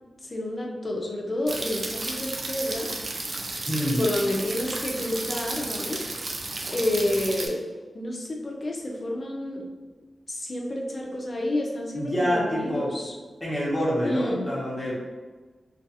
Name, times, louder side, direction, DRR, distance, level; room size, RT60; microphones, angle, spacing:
voice 1, 0.2-3.0 3.7-6.0 6.6-7.7 7.9-9.7 10.3-13.1 14.0-14.4, left 1 dB, 35° left, -1 dB, 0.4 m, -29 dB
sound 1, 1.5-7.5, right 2 dB, 50° right, 0.3 m, -33 dB
voice 2, 3.7-4.0 11.9-12.9 13.4-14.9, equal, 10° left, -7 dB, 0.8 m, -26 dB
2.3 x 2.3 x 2.7 m, 1.3 s
wide cardioid pair, 135°, 0 cm